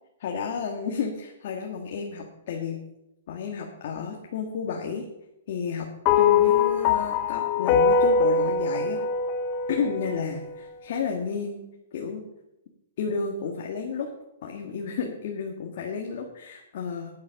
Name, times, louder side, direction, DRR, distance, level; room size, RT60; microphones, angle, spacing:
voice 1, 0.2-2.8 3.3-5.0 5.5-5.9 6.2-9.0 9.7-11.6 11.9-12.2 13.0-14.1 14.4-17.1, left 5 dB, 50° left, 1 dB, 1.8 m, -32 dB
sound 1, 6.1-10.5, left 6 dB, 30° left, 0.8 m, -22 dB
10.5 x 9.7 x 5.8 m, 0.90 s
hypercardioid pair, 160°, 0 cm